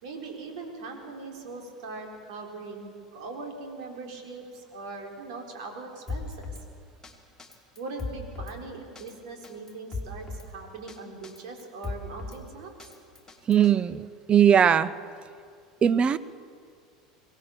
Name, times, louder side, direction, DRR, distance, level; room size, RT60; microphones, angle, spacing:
voice 1, 0.0-6.5 7.8-12.7, right 3 dB, 65° right, 2 dB, 4.0 m, -40 dB
Drum kit, 6.1-6.6 7.0-7.1 7.4-8.6 9.0-9.1 9.4-10.5 10.9-11.0 11.2-12.4 12.8-13.7, left 3 dB, 10° left, 2.6 m, -37 dB
voice 2, 13.5-14.9 15.8-16.2, right 8 dB, 30° right, 16 dB, 0.7 m, -20 dB
23.0 x 17.0 x 7.0 m, 2.2 s
hypercardioid pair, 80°, 4 cm